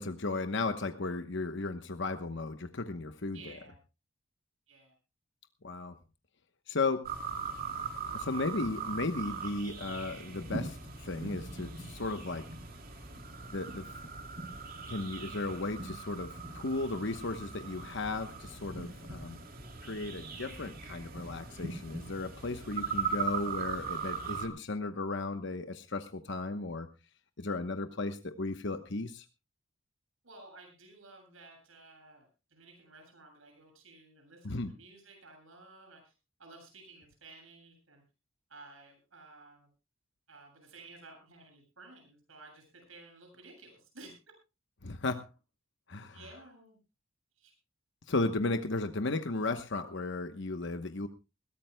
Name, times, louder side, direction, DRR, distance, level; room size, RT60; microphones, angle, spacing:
voice 1, 0.0-3.5 5.6-5.9 6.7-7.1 8.1-12.5 13.5-14.0 14.9-19.4 19.8-26.9 27.4-29.3 34.4-34.7 44.8-45.3 45.9-46.2 48.1-51.1, left 3 dB, 60° left, 8 dB, 1.0 m, -35 dB
voice 2, 3.3-3.8 4.7-4.9 30.2-36.1 36.4-38.0 38.5-39.7 40.3-44.1 46.1-46.8 47.4-47.5, right 3 dB, 80° right, 3 dB, 7.7 m, -54 dB
sound 1, 7.0-24.5, right 5 dB, 45° right, 3.1 m, -40 dB
21.0 x 17.0 x 2.2 m, 0.30 s
head